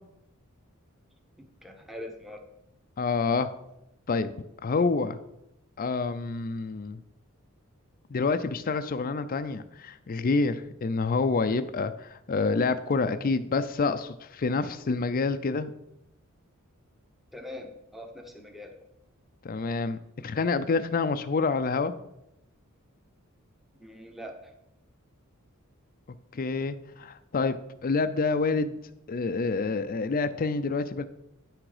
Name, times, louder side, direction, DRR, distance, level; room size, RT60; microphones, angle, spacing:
voice 1, 1.4-2.4 17.3-18.8 23.8-24.5, left 1 dB, ahead, 3 dB, 0.8 m, -43 dB
voice 2, 3.0-3.5 4.1-4.3 4.6-5.2 5.8-7.0 8.1-15.7 19.4-21.9 26.3-27.5 27.8-28.7 29.1-31.0, left 4 dB, 40° left, 10 dB, 0.4 m, -27 dB
9.4 x 6.1 x 4.9 m, 0.83 s
head